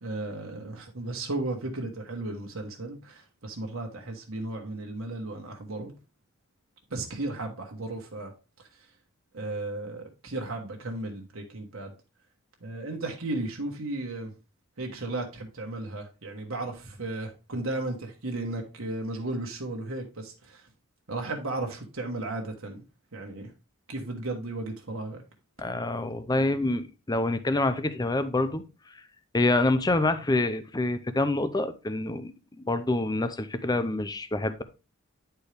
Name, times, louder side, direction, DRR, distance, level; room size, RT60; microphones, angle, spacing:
voice 1, 0.0-5.9 6.9-8.3 9.3-11.9 12.6-14.3 14.8-20.6 21.1-22.8 23.1-23.5 23.9-25.2, right 2 dB, 65° right, 1.3 m, -35 dB
voice 2, 25.6-29.0 29.3-32.3 32.6-34.6, left 2 dB, 20° left, 0.5 m, -27 dB
9.7 x 4.5 x 3.3 m
head